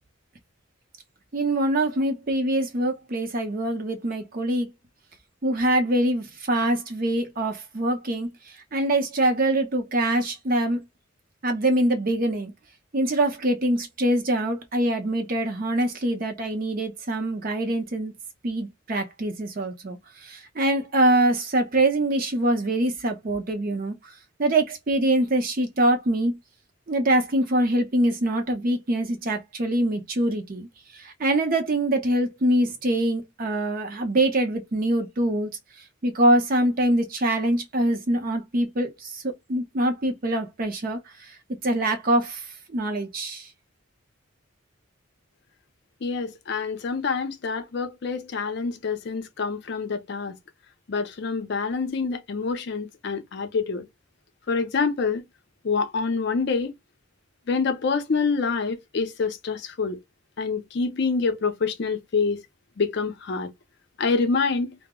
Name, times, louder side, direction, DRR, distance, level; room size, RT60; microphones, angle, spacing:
voice 1, 1.3-4.7 5.4-8.3 8.7-10.8 11.4-12.5 12.9-18.1 18.4-24.1 24.4-26.4 26.9-30.7 30.9-35.5 36.0-39.2 39.5-41.0 41.6-42.4 42.7-43.5, right 1 dB, 45° right, 0.6 m, -24 dB
voice 2, 46.0-50.3 50.9-53.9 54.5-55.2 55.6-56.7 57.5-60.0 60.4-62.4 62.8-63.5 64.0-64.7, left 4 dB, 55° left, 0.5 m, -26 dB
2.0 x 2.0 x 3.6 m
head